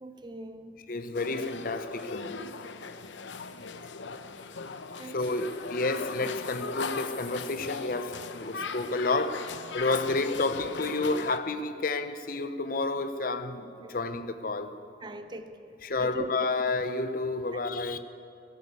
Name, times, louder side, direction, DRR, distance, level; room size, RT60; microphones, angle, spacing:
voice 1, 0.0-0.8 5.0-5.3 13.8-14.0 15.0-16.3, right 2 dB, 25° right, 0.7 m, -41 dB
voice 2, 0.9-2.4 5.0-9.5 9.7-14.7 15.8-18.0, left 3 dB, 50° left, 0.7 m, -30 dB
sound 1, 1.1-11.4, left 4 dB, 90° left, 0.7 m, -38 dB
15.0 x 11.5 x 8.2 m
head